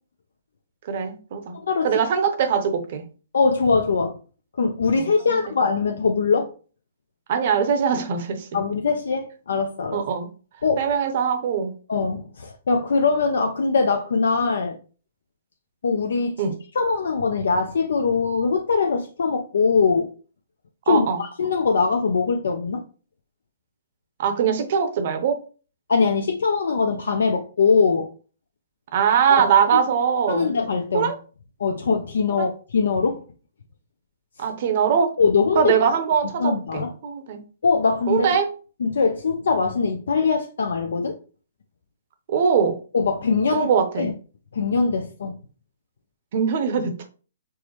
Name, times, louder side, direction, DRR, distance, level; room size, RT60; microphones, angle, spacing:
voice 1, 0.9-1.6 1.8-3.0 4.9-5.4 7.3-8.5 9.9-10.3 10.8-11.7 16.4-16.5 20.9-21.2 24.2-25.4 28.9-30.5 30.9-31.1 32.3-32.5 34.4-35.1 35.6-37.4 38.1-38.5 42.3-42.8 43.5-44.1 46.3-47.1, right 7 dB, 50° right, 0.7 m, -22 dB
voice 2, 3.3-4.2 4.6-6.5 8.5-10.0 10.6-10.9 11.9-14.8 15.8-16.3 16.8-20.1 20.9-22.8 25.9-28.1 30.3-31.1 31.6-33.2 35.2-35.7 36.4-36.9 37.6-38.4 38.8-41.2 42.9-43.7 44.0-44.1 44.5-45.3, left 4 dB, 70° left, 0.5 m, -22 dB
4.6 x 2.0 x 3.0 m
hypercardioid pair, 130°, 0 cm